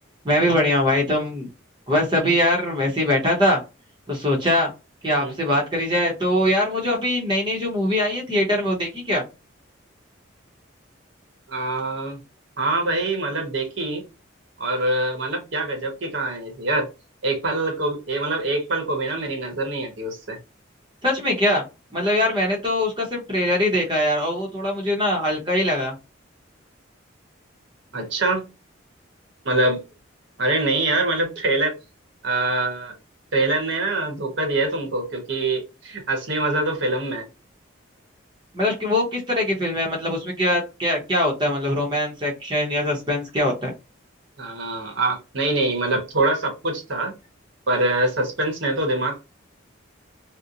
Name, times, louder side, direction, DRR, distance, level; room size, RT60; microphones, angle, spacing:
voice 1, 0.2-1.5 1.9-3.6 4.1-4.7 5.0-9.2 21.0-21.6 21.9-25.9 38.5-43.7, left 1 dB, 25° right, 0.7 m, -22 dB
voice 2, 11.5-12.2 12.6-14.0 14.6-16.9 17.2-20.4 27.9-28.4 29.4-29.8 30.4-31.8 32.2-32.9 33.3-37.3 44.4-47.1 47.7-49.2, right 2 dB, 65° right, 0.9 m, -24 dB
2.8 x 2.1 x 2.4 m
head